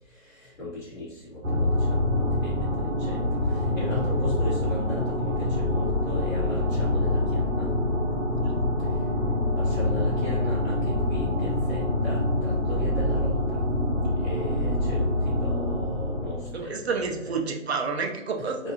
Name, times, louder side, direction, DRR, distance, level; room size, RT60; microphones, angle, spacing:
voice 1, 0.1-7.7 9.5-13.6 14.2-17.4 18.6-18.7, equal, 35° left, -10 dB, 1.0 m, -37 dB
sound 1, 1.4-16.6, left 1 dB, 85° right, 0.8 m, -26 dB
sound 2, 1.5-16.1, left 2 dB, 60° left, 1.0 m, -36 dB
voice 2, 16.5-18.6, right 4 dB, 55° right, 3 dB, 0.6 m, -29 dB
2.7 x 2.3 x 2.7 m, 0.90 s
figure-of-eight pair, 155°, 39 cm